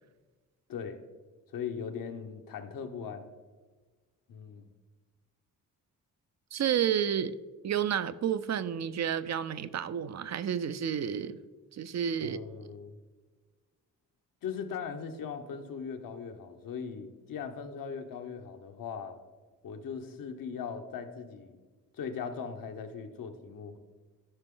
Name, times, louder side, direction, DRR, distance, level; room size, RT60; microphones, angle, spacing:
voice 1, 0.7-1.0 1.5-3.3 4.3-4.7 12.2-12.9 14.4-19.2 19.6-21.6 21.9-23.8, left 6 dB, 75° left, 1.1 m, -39 dB
voice 2, 6.5-7.3 7.6-11.4 11.7-12.4, right 9 dB, 50° right, 0.5 m, -30 dB
13.0 x 5.9 x 3.8 m
cardioid pair, 120°, 34 cm